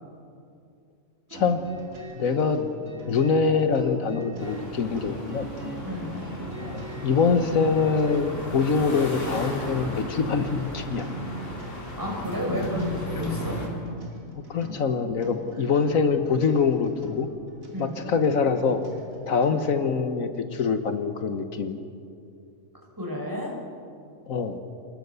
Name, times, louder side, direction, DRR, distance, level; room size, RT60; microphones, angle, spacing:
sound 1, 1.3-19.8, right 2 dB, 80° right, 3.6 m, -41 dB
voice 1, 2.1-2.6 3.1-5.5 6.6-11.1 14.5-16.9 17.2-17.3 17.8-18.8 19.3-21.8 24.3-24.6, left 5 dB, 75° left, 8 dB, 1.6 m, -24 dB
sound 2, 4.4-13.7, left 1 dB, 60° left, 4.4 m, -35 dB
voice 2, 5.8-6.1 12.0-13.6 17.7-18.0 23.0-23.5, equal, 15° right, -1 dB, 5.2 m, -31 dB
28.0 x 20.5 x 6.9 m, 2.5 s
omnidirectional pair, 1.4 m